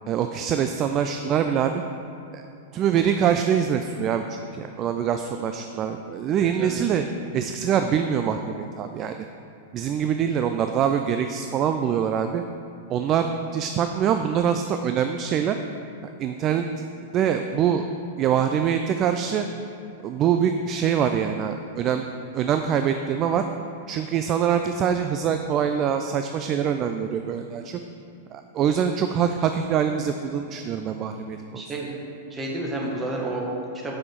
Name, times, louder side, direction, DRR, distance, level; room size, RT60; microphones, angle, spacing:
voice 1, 0.1-1.8 2.3-2.4 2.7-7.1 7.3-9.2 9.7-12.4 12.9-15.6 16.0-16.7 17.1-17.9 18.2-19.5 20.0-22.1 22.3-23.4 23.9-27.8 28.3-31.6, right 8 dB, 30° right, 7 dB, 0.3 m, -24 dB
voice 2, 6.4-6.7 31.5-31.9 32.3-33.9, right 1 dB, 15° right, -2 dB, 1.4 m, -30 dB
7.3 x 6.0 x 4.5 m, 2.8 s
figure-of-eight pair, 95°, 0 cm